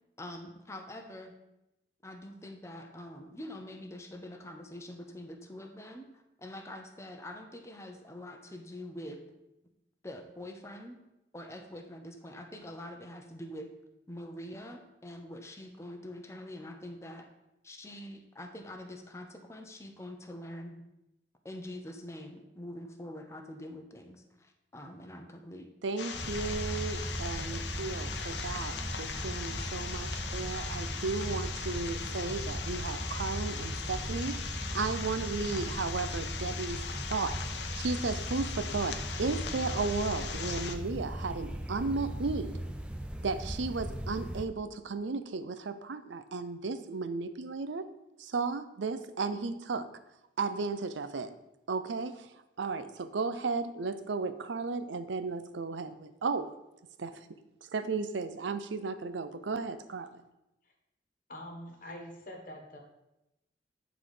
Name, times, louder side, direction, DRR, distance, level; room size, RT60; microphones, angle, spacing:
voice 1, 0.2-1.3 2.0-9.2 10.0-11.0 11.3-13.7 14.1-17.3 17.6-20.8 21.4-25.7, left 1 dB, 15° left, 4 dB, 0.7 m, -45 dB
voice 2, 25.8-36.8 37.1-42.6 43.2-47.9 48.2-49.9 50.4-51.3 51.7-52.3 52.6-56.5 57.0-57.2 57.7-60.1, right 4 dB, 90° right, 11 dB, 0.5 m, -34 dB
sound 1, 26.0-40.8, left 6 dB, 75° left, 0.7 m, -40 dB
sound 2, 26.1-44.4, right 1 dB, 5° right, 0.4 m, -38 dB
voice 3, 61.3-62.8, left 1 dB, 45° left, 2 dB, 1.4 m, -44 dB
9.2 x 4.0 x 4.9 m, 0.91 s
head